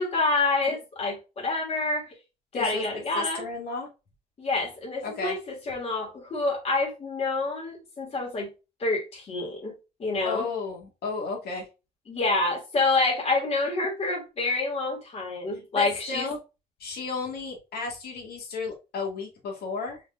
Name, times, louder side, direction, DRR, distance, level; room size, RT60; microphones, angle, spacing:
voice 1, 0.0-2.1 2.5-3.4 4.4-5.4 5.7-8.5 8.8-10.5 12.1-16.3, left 3 dB, 40° left, 2.7 m, -27 dB
voice 2, 2.5-2.9 3.1-3.9 5.0-5.4 10.2-11.7 15.8-16.4 16.8-20.0, left 4 dB, 65° left, 2.2 m, -33 dB
4.7 x 4.0 x 2.6 m
cardioid pair, 110°, 17 cm